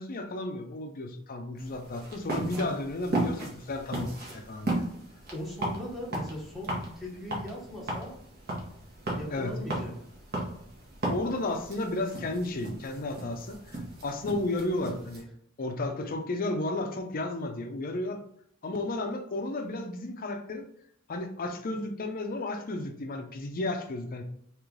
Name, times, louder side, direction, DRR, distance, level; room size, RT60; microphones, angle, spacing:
voice 1, 0.0-4.8 9.3-9.6 11.1-13.8 14.0-15.3 15.6-18.2 18.6-20.7 21.1-24.2, left 2 dB, 40° left, 5 dB, 0.5 m, -33 dB
sound 1, 1.6-15.2, right 1 dB, 45° right, 1.0 m, -36 dB
voice 2, 5.3-8.1 9.1-9.9 16.0-16.1, left 1 dB, ahead, -4 dB, 0.9 m, -39 dB
3.2 x 3.0 x 3.7 m, 0.68 s
head